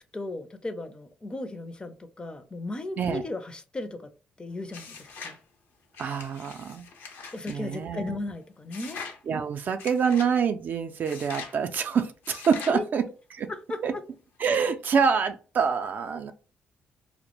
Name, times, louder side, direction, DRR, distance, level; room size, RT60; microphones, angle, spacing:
voice 1, 0.1-4.1 4.4-5.4 7.3-9.0 12.7-12.9 13.5-13.8, left 2 dB, 25° left, 0.4 m, -35 dB
sound 1, 4.7-5.4 5.9-7.6 8.7-9.2 9.8-10.3 11.0-11.6 12.2-12.8, left 5 dB, 80° left, 0.6 m, -42 dB
voice 2, 6.0-6.9 7.5-8.2 9.3-13.0 13.3-13.5 13.8-13.9 14.4-16.3, right 6 dB, 55° right, 0.3 m, -26 dB
2.1 x 2.0 x 2.9 m
cardioid pair, 75°, 4 cm